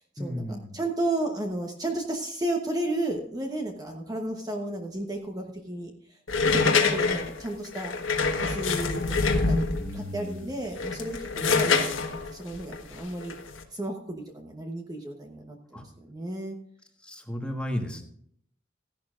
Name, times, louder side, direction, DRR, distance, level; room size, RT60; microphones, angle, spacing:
voice 1, 0.2-0.7 9.8-10.5 15.7-15.8 17.0-18.0, equal, 5° left, 2 dB, 1.4 m, -34 dB
voice 2, 0.7-7.9 8.4-9.0 9.3-13.3 13.7-16.6, right 1 dB, 20° right, 2 dB, 1.0 m, -33 dB
sound 1, 6.3-10.0 10.7-13.6, left 4 dB, 80° left, 1.4 m, -25 dB
15.0 x 11.0 x 2.5 m, 0.66 s
head